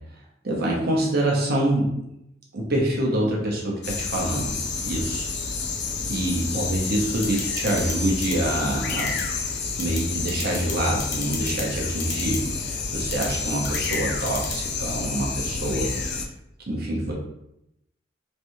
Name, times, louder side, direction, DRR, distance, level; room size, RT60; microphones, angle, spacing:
voice 1, 0.4-1.9 2.5-4.6 4.8-5.3 6.0-9.2 9.8-16.2 16.7-17.1, right 1 dB, 55° right, -2 dB, 0.8 m, -26 dB
sound 1, 3.8-16.2, left 4 dB, 60° left, 0.4 m, -29 dB
sound 2, 7.2-7.9 8.2-8.3 8.9-9.2 9.8-10.0 10.3-10.7 11.0-11.6 12.0-12.4 13.1-13.3 13.6-14.0 14.3-14.5, left 5 dB, 75° left, 0.8 m, -32 dB
3.3 x 3.0 x 2.7 m, 0.81 s
head